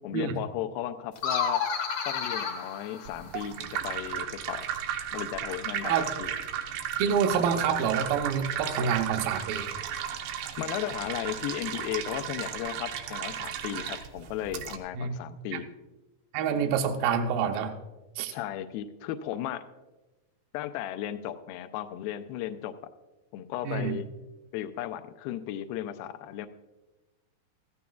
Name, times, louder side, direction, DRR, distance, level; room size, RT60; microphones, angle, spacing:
voice 1, 0.0-1.6 2.1-4.7 5.1-6.3 10.6-15.7 18.3-19.6 20.5-22.7 23.3-24.1 24.5-26.5, left 12 dB, 85° left, 8 dB, 2.2 m, -35 dB
sound 1, 1.2-3.7, left 6 dB, 70° left, 1.8 m, -31 dB
sound 2, 3.1-14.8, right 9 dB, 90° right, 3.0 m, -35 dB
voice 2, 7.0-9.7 14.9-15.2 15.5-15.6 16.3-17.8 18.2-18.3 23.6-24.0, right 7 dB, 75° right, 6 dB, 2.2 m, -27 dB
15.5 x 14.5 x 2.3 m, 1.1 s
omnidirectional pair, 4.7 m